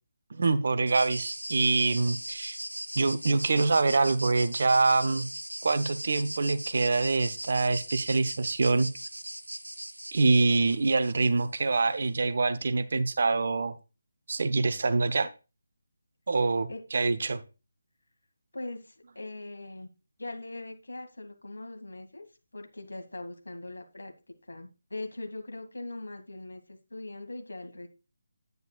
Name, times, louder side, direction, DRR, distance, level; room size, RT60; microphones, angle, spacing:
voice 1, 0.3-2.6 3.0-5.3 5.6-8.9 10.1-13.8 14.3-15.3 16.3-17.4, right 3 dB, 50° right, 12 dB, 0.9 m, -25 dB
sound 1, 0.9-11.8, right 1 dB, 90° right, 0.9 m, -39 dB
voice 2, 18.5-19.9 20.2-22.3 22.5-24.1 24.4-27.9, left 2 dB, 70° left, 5 dB, 2.1 m, -41 dB
9.5 x 9.4 x 2.4 m, 0.29 s
figure-of-eight pair, 150°, 0 cm